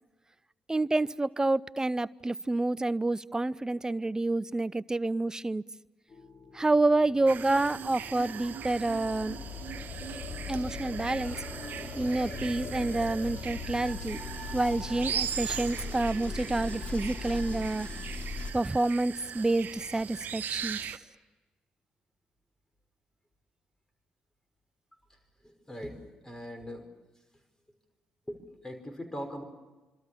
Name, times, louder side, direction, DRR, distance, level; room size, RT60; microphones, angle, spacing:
voice 1, 0.7-5.6 6.5-9.4 10.5-11.4 12.0-14.2 14.5-17.9 18.5-20.8, right 2 dB, 15° right, 20 dB, 0.7 m, -28 dB
sound 1, 6.1-18.5, left 4 dB, 35° left, 3.0 m, -40 dB
sound 2, 7.3-21.0, right 8 dB, 50° right, 1.2 m, -39 dB
voice 2, 25.4-26.9 28.3-28.4 28.6-29.4, equal, 15° left, 7 dB, 5.5 m, -40 dB
26.0 x 25.5 x 7.2 m, 1.2 s
figure-of-eight pair, 40°, 4 cm